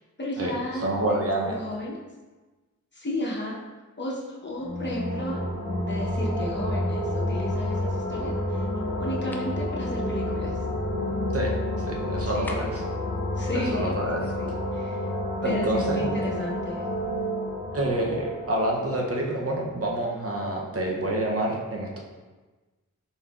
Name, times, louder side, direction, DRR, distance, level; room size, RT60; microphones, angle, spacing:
voice 1, 0.0-2.0 2.9-3.6 4.0-8.6 9.0-10.6 12.3-12.6 13.3-14.0 14.2-15.0 15.4-16.9, left 1 dB, 35° left, -4 dB, 0.9 m, -33 dB
voice 2, 0.8-1.6 11.3-11.5 11.8-12.8 13.5-14.2 15.4-16.1 17.7-22.0, right 1 dB, 45° right, -1 dB, 0.7 m, -27 dB
sound 1, 4.5-20.0, left 1 dB, 65° left, 0.9 m, -30 dB
sound 2, 9.3-9.6 12.4-12.9, left 1 dB, 5° left, 0.4 m, -41 dB
4.1 x 3.7 x 2.4 m, 1.2 s
wide cardioid pair, 55°, 32 cm